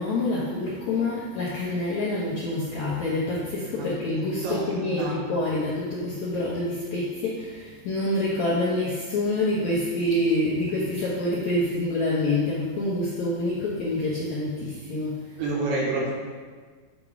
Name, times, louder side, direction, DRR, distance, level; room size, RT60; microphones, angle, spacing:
voice 1, 0.0-15.4, left 1 dB, 70° left, -7 dB, 1.7 m, -27 dB
voice 2, 4.4-5.2 15.4-16.1, right 2 dB, 80° right, -4 dB, 3.2 m, -28 dB
8.3 x 3.7 x 4.7 m, 1.5 s
omnidirectional pair, 4.6 m